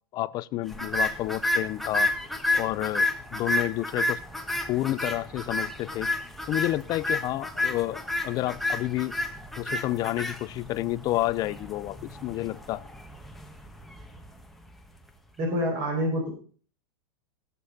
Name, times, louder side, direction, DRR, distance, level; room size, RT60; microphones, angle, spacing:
voice 1, 0.1-2.1 2.5-3.1 3.3-4.2 4.7-6.1 6.5-9.1 9.6-12.9, left 16 dB, 35° left, 0.5 m, -30 dB
sound 1, 0.7-15.0, left 2 dB, ahead, 1.2 m, -31 dB
voice 2, 15.4-16.3, equal, 35° right, 5.1 m, -27 dB
16.0 x 6.9 x 5.6 m
supercardioid pair, 135°, 12 cm